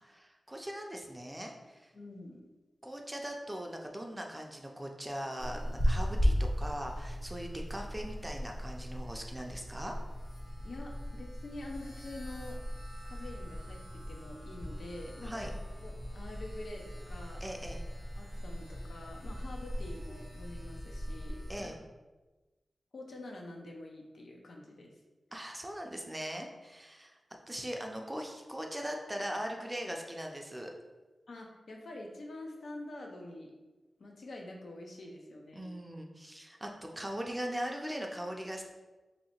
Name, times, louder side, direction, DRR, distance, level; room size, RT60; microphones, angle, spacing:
voice 1, 0.0-1.9 2.8-9.9 15.2-15.5 17.4-17.8 21.5-21.8 25.3-27.2 27.5-30.7 35.5-36.7 37.0-38.6, equal, 15° right, 1 dB, 0.4 m, -40 dB
voice 2, 1.9-2.4 10.6-12.6 13.0-15.5 15.8-17.5 18.2-21.8 22.9-25.0 31.3-33.5 34.0-35.7, left 1 dB, 70° left, 1 dB, 0.6 m, -46 dB
sound 1, 5.4-21.6, equal, 50° left, 1.3 m, -37 dB
3.0 x 2.8 x 4.3 m, 1.2 s
wide cardioid pair, 120°, 0 cm